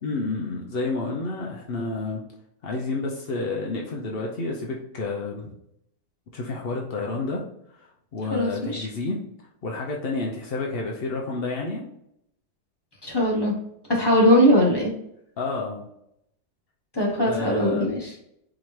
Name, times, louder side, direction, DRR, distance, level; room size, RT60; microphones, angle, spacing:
voice 1, 0.0-2.2 2.6-5.6 6.3-7.4 7.7-9.2 9.6-11.9 15.4-15.9 17.2-17.9, left 3 dB, 65° left, -1 dB, 0.5 m, -30 dB
voice 2, 8.3-8.9 13.0-13.5 13.9-14.9 16.9-18.1, equal, 15° left, -3 dB, 1.2 m, -20 dB
4.4 x 3.8 x 3.1 m, 0.77 s
omnidirectional pair, 1.9 m